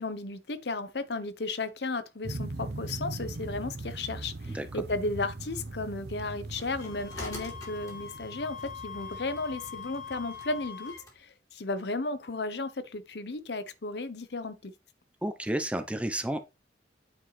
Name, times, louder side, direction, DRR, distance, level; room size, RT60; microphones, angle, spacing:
voice 1, 0.0-14.7, left 3 dB, 70° left, 0.8 m, -34 dB
sound 1, 2.2-10.7, right 2 dB, 65° right, 0.7 m, -41 dB
sound 2, 6.2-11.2, left 1 dB, 20° left, 2.5 m, -48 dB
Wind instrument woodwind instrument, 6.8-11.1, left 7 dB, 90° left, 2.9 m, -43 dB
voice 2, 15.2-16.4, right 1 dB, 5° right, 0.6 m, -31 dB
8.8 x 4.8 x 3.2 m
head